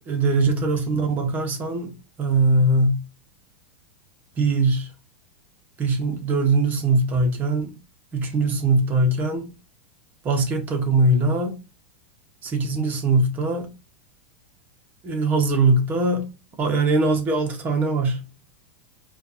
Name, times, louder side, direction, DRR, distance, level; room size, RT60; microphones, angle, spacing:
voice 1, 0.0-1.9 2.2-3.0 4.4-4.9 5.8-7.7 8.1-9.5 10.2-11.6 12.4-13.7 15.0-16.3 16.6-18.2, right 2 dB, 25° right, 1.2 m, -21 dB
5.0 x 2.6 x 2.8 m
supercardioid pair, 140°, 7 cm